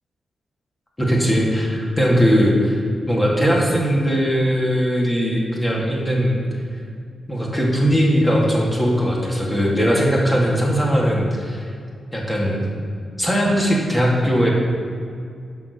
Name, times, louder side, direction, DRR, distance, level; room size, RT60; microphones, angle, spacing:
voice 1, 1.0-2.8 3.1-6.4 7.3-11.6 12.1-12.6 13.2-14.5, equal, 20° left, -3 dB, 2.3 m, -19 dB
11.0 x 4.9 x 6.7 m, 2.3 s
supercardioid pair, 50°, 0 cm